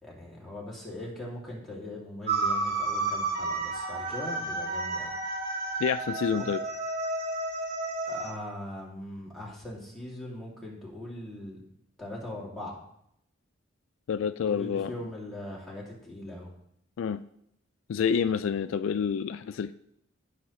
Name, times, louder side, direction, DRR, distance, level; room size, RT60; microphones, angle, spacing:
voice 1, 0.0-5.1 6.4-6.5 8.0-11.6 12.0-12.8 14.4-16.5, left 1 dB, ahead, -5 dB, 2.5 m, -40 dB
sound 1, 2.3-8.3, right 3 dB, 50° right, 1.5 m, -31 dB
voice 2, 5.8-6.6 14.1-14.9 17.0-17.2 17.9-19.7, left 7 dB, 70° left, 13 dB, 0.3 m, -28 dB
16.0 x 5.6 x 3.1 m, 0.74 s
head